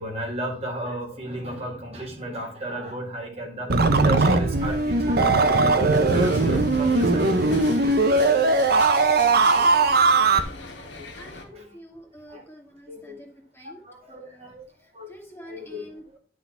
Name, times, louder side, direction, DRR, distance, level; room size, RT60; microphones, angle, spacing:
voice 1, 0.0-7.9 8.2-8.6 9.5-9.7 10.0-10.1 11.0-11.1 11.5-11.7 12.3-12.4 12.9-13.2 13.6-14.7 14.9-15.2 15.5-15.9, right 1 dB, 35° right, 1 dB, 1.9 m, -34 dB
sound 1, 3.7-10.4, right 3 dB, 55° right, 0.8 m, -19 dB
sound 2, 4.6-11.4, left 3 dB, 75° left, 1.6 m, -41 dB
voice 2, 11.2-13.8 14.1-14.5 14.8-16.2, equal, 15° left, 0 dB, 1.9 m, -47 dB
10.5 x 3.8 x 5.6 m, 0.43 s
head